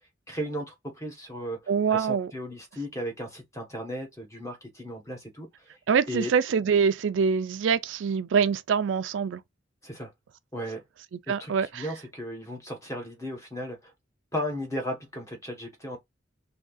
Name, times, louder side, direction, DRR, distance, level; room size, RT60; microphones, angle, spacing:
voice 1, 0.3-5.5 6.1-6.3 9.8-10.1 10.5-10.8 11.3-13.9 14.3-16.0, equal, 15° left, 1.2 m, -35 dB
voice 2, 1.7-2.3 5.9-9.4 11.3-11.9, right 6 dB, 85° right, 0.4 m, -24 dB
2.8 x 2.6 x 3.8 m
head